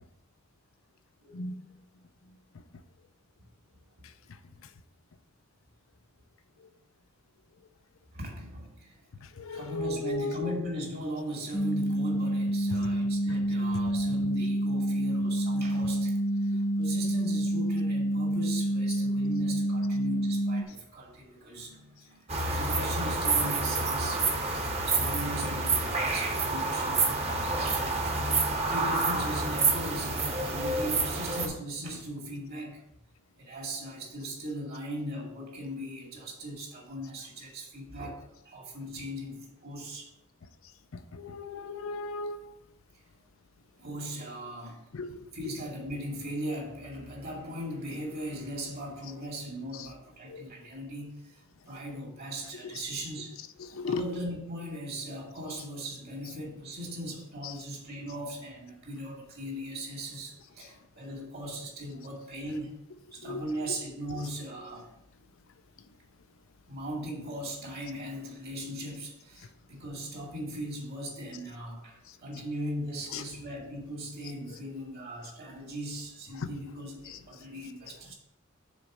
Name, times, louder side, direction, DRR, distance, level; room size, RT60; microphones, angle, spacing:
voice 1, 8.1-9.0 9.5-16.1 16.4-24.2 24.9-27.9 28.7-32.8 33.4-40.1 43.8-44.8 45.3-51.4 51.7-53.4 53.8-62.7 63.1-64.9 66.7-78.1, equal, 50° right, 2.3 m, -39 dB
voice 2, 9.4-10.3 41.1-42.4 44.9-45.1 50.3-50.4 53.8-54.0 63.3-63.4, left 2 dB, 80° left, 0.5 m, -34 dB
sound 1, 11.5-20.6, right 1 dB, 20° left, 0.5 m, -28 dB
sound 2, 22.3-31.5, right 3 dB, 30° right, 1.1 m, -28 dB
6.3 x 4.1 x 6.0 m
head